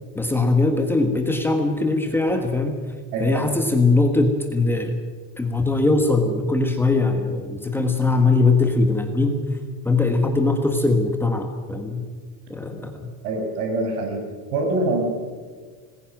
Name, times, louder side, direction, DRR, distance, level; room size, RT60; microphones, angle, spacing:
voice 1, 0.1-2.8 3.2-5.0 5.4-9.4 9.8-12.0 12.5-13.1, left 3 dB, 5° left, 4 dB, 1.4 m, -21 dB
voice 2, 3.1-3.4 13.2-14.2 14.5-15.0, right 2 dB, 75° right, 3 dB, 6.5 m, -24 dB
25.5 x 20.5 x 6.1 m, 1.5 s
supercardioid pair, 165°, 44 cm